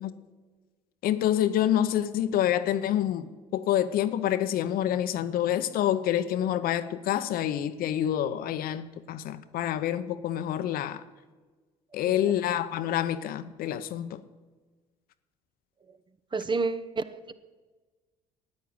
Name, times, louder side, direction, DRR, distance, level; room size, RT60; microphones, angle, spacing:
voice 1, 1.0-11.0 11.9-14.2, left 11 dB, 65° left, 0.8 m, -27 dB
voice 2, 16.3-17.3, right 4 dB, 30° right, 0.9 m, -29 dB
10.5 x 9.3 x 8.7 m
supercardioid pair, 65°, 16 cm